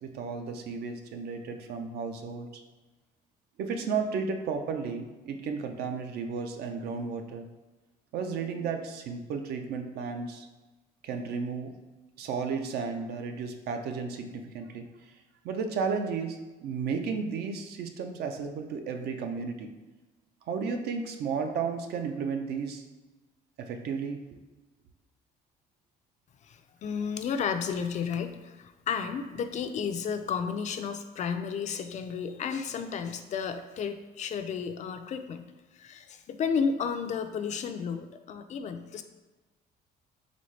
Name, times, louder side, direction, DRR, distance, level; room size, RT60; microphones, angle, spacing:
voice 1, 0.0-2.5 3.6-7.5 8.1-10.5 11.0-11.7 12.2-14.9 15.4-19.7 20.5-22.8 23.6-24.2, right 5 dB, 70° right, 5 dB, 0.5 m, -33 dB
voice 2, 26.5-35.4 35.8-39.0, left 6 dB, 45° left, 8 dB, 0.4 m, -32 dB
4.1 x 3.6 x 3.2 m, 1.2 s
cardioid pair, 110°, 17 cm